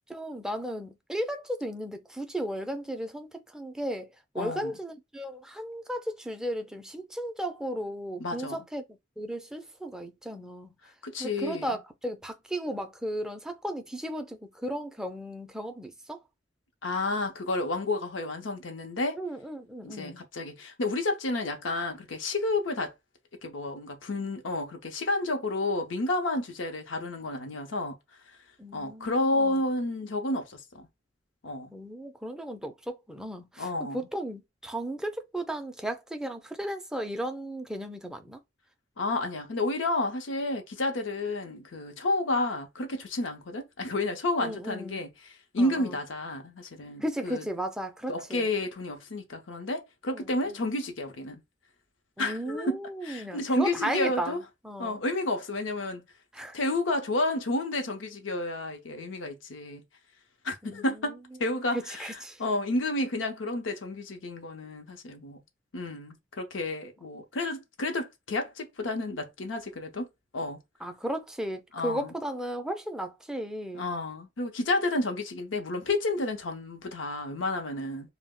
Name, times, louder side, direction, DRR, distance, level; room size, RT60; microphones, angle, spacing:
voice 1, 0.1-4.1 4.3-8.8 9.2-10.7 11.2-16.2 19.1-20.2 28.6-29.5 31.7-38.4 44.4-45.0 45.6-46.0 47.0-48.5 50.1-50.3 52.2-54.4 54.6-55.0 56.3-56.6 60.6-61.0 62.0-62.4 70.8-73.9, right 1 dB, 5° right, 0.4 m, -35 dB
voice 2, 4.4-4.8 8.2-8.6 11.0-11.8 16.8-19.2 19.8-22.9 23.4-28.0 28.7-30.9 31.4-31.7 33.6-34.1 39.0-47.5 48.1-51.4 52.2-54.4 54.8-56.1 56.5-59.8 60.4-65.4 65.7-70.1 70.3-70.6 71.7-72.1 73.7-78.1, left 2 dB, 80° left, 0.7 m, -31 dB
2.1 x 2.1 x 3.6 m
head